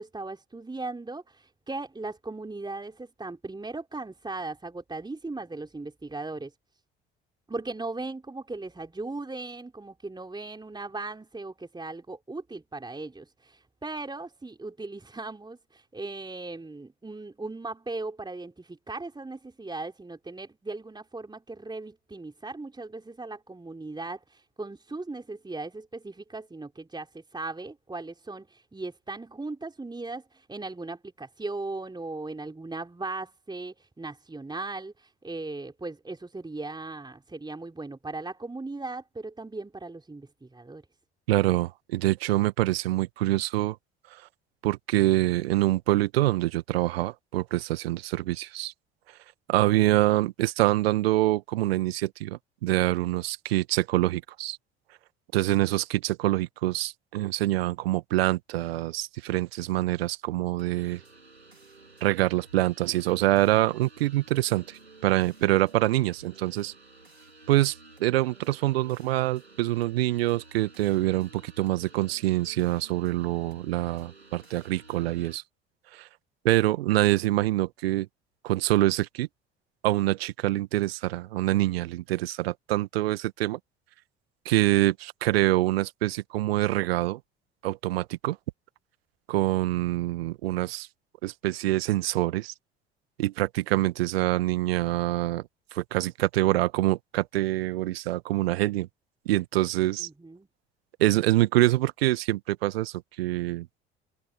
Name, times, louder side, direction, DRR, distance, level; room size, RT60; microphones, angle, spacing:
voice 1, 0.0-6.5 7.5-40.8 100.0-100.5, right 3 dB, 15° right, 4.1 m, -38 dB
voice 2, 41.3-43.8 44.1-44.2 44.6-48.7 49.5-54.6 55.3-61.0 62.0-66.7 67.5-75.4 75.9-76.1 76.4-78.1 78.4-79.3 79.8-83.6 84.5-87.2 87.6-88.4 89.3-90.9 91.2-92.5 93.2-98.9 99.3-100.1 101.0-103.7, right 16 dB, 70° right, 1.9 m, -25 dB
sound 1, 60.6-75.4, right 3 dB, 90° right, 4.1 m, -53 dB
figure-of-eight pair, 55°, 31 cm